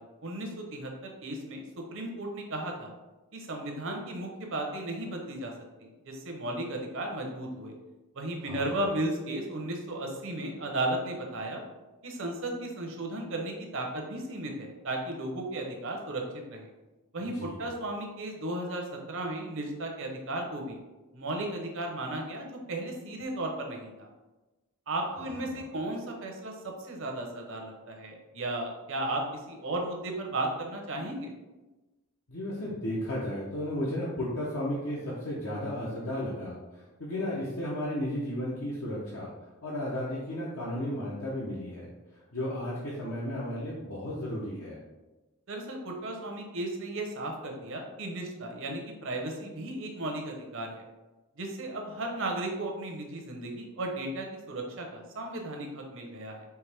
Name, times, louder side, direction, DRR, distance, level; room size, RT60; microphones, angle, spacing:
voice 1, 0.2-2.9 3.3-5.5 5.8-7.7 8.1-11.6 12.0-16.2 16.5-16.7 17.1-20.8 21.1-24.1 24.9-31.3 45.5-50.8 51.4-56.4, right 1 dB, 60° right, 2 dB, 0.8 m, -35 dB
voice 2, 8.4-8.8 17.2-17.7 25.2-25.6 32.3-39.3 39.6-44.8, left 1 dB, 65° left, -6 dB, 0.8 m, -34 dB
4.6 x 3.0 x 3.4 m, 1.1 s
head